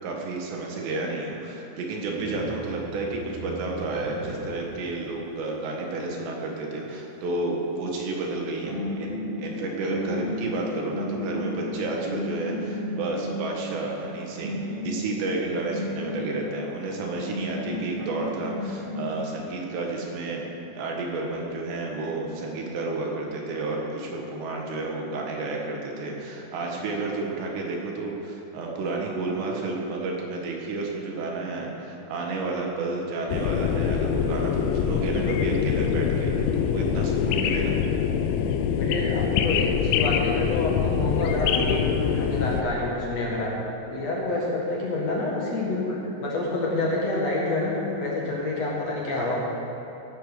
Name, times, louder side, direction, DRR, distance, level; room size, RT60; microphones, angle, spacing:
voice 1, 0.0-9.1 9.4-20.5 20.8-37.8, right 3 dB, 75° right, -1 dB, 3.7 m, -31 dB
sound 1, 2.0-4.7 8.2-8.4 8.7-13.8 14.4-16.7 17.2-19.0, left 1 dB, 50° right, 4.6 m, -34 dB
sound 2, 33.3-42.6, left 7 dB, 85° left, 2.9 m, -24 dB
voice 2, 38.8-43.5 43.9-49.4, left 2 dB, 50° left, -4 dB, 2.1 m, -28 dB
17.0 x 6.7 x 6.8 m, 3.0 s
omnidirectional pair, 5.1 m